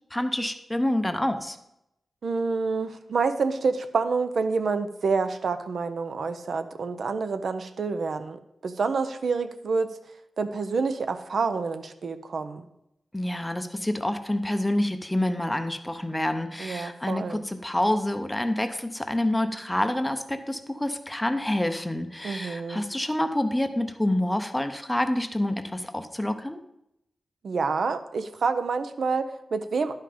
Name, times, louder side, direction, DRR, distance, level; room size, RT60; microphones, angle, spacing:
voice 1, 0.1-1.6 13.1-26.6, left 1 dB, 10° left, 8 dB, 0.6 m, -27 dB
voice 2, 2.2-9.9 10.4-12.7 16.6-17.4 22.2-22.8 27.4-29.9, right 4 dB, 60° right, 9 dB, 0.6 m, -28 dB
11.5 x 5.7 x 5.0 m, 0.83 s
wide cardioid pair, 135°, 0 cm